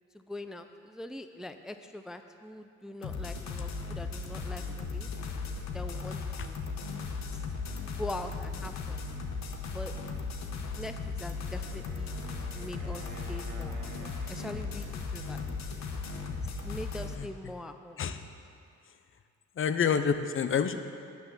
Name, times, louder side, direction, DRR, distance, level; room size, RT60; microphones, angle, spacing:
voice 1, 0.1-5.1 5.7-6.6 7.3-7.4 7.8-9.0 9.7-9.9 10.7-12.2 12.5-15.4 16.4-18.0, left 1 dB, ahead, 8 dB, 0.3 m, -42 dB
sound 1, 3.0-17.1, left 4 dB, 65° left, 0.9 m, -37 dB
Wind instrument woodwind instrument, 11.5-15.7, right 5 dB, 70° right, 1.1 m, -51 dB
voice 2, 19.6-20.8, left 7 dB, 45° left, 10 dB, 0.6 m, -27 dB
8.7 x 6.0 x 6.8 m, 2.4 s
cardioid pair, 90°, 30 cm